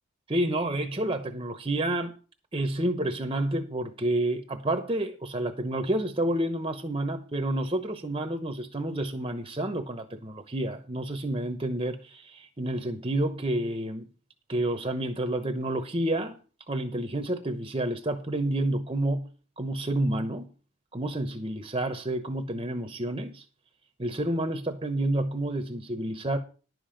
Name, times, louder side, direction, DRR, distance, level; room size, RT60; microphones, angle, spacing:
voice 1, 0.3-2.1 2.5-14.1 14.5-16.4 16.7-19.2 19.6-20.5 20.9-23.4 24.0-26.4, right 1 dB, 25° right, 0.9 m, -29 dB
11.0 x 7.6 x 5.1 m
head